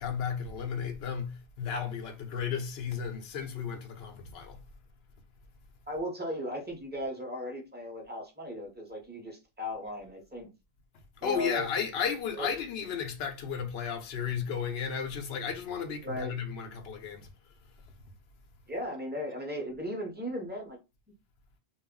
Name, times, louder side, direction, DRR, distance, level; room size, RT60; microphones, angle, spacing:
voice 1, 0.0-4.6 11.2-17.3, left 7 dB, 85° left, 0.8 m, -34 dB
voice 2, 5.9-10.5 11.2-11.7 12.4-12.5 16.0-16.3 18.7-20.8, equal, 10° right, 0.6 m, -36 dB
2.2 x 2.1 x 3.5 m
omnidirectional pair, 1.0 m